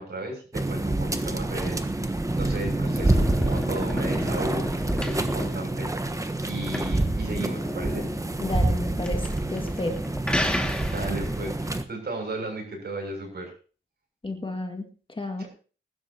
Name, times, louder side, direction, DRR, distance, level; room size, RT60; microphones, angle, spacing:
voice 1, 0.0-1.8 2.4-8.1 10.8-13.5 15.4-15.5, right 2 dB, 55° right, 3 dB, 6.9 m, -35 dB
sound 1, 0.5-11.8, right 2 dB, 15° right, 1.2 m, -27 dB
sound 2, 2.2-11.4, left 1 dB, 5° left, 2.2 m, -32 dB
voice 2, 8.4-10.0 14.2-15.4, left 2 dB, 25° left, 4 dB, 2.1 m, -32 dB
21.5 x 12.5 x 2.9 m, 0.37 s
wide cardioid pair, 95°, 20 cm